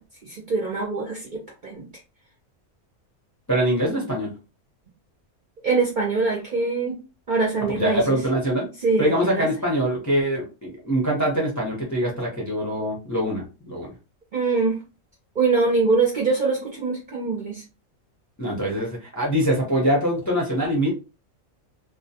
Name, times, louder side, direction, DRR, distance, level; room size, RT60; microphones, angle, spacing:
voice 1, 0.2-1.9 5.6-7.0 7.3-8.0 8.8-9.5 14.3-14.8 15.4-17.6, right 4 dB, 50° right, -2 dB, 0.6 m, -23 dB
voice 2, 3.5-4.3 7.7-8.7 9.0-13.9 18.4-20.9, equal, 20° left, -2 dB, 0.5 m, -24 dB
2.2 x 2.1 x 2.7 m, 0.30 s
omnidirectional pair, 1.4 m